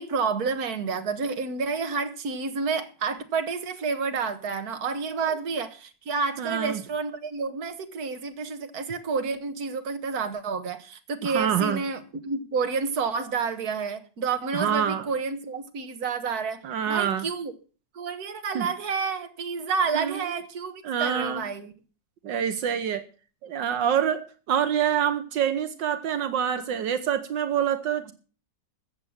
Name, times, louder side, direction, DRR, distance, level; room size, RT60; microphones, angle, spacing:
voice 1, 0.0-17.5 17.9-21.7, right 5 dB, 60° right, 1.9 m, -29 dB
voice 2, 6.4-6.8 11.2-11.8 14.5-15.1 16.6-17.3 18.5-18.7 19.9-20.2 20.8-21.4 22.2-23.0 23.4-28.1, right 8 dB, 80° right, 1.7 m, -26 dB
14.5 x 7.9 x 7.3 m
omnidirectional pair, 1.9 m